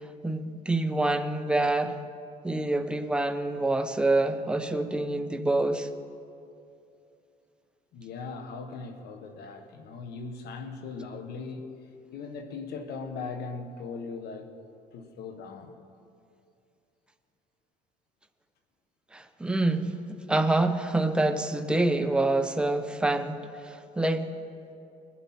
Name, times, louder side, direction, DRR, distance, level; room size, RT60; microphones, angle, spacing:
voice 1, 0.2-2.0 2.4-5.9 19.1-19.9 20.3-24.3, right 2 dB, 5° right, 7 dB, 0.8 m, -26 dB
voice 2, 7.9-11.7 12.1-14.5 14.9-15.7, left 4 dB, 75° left, 7 dB, 1.3 m, -39 dB
20.5 x 11.5 x 4.4 m, 2.6 s
cardioid pair, 110°, 17 cm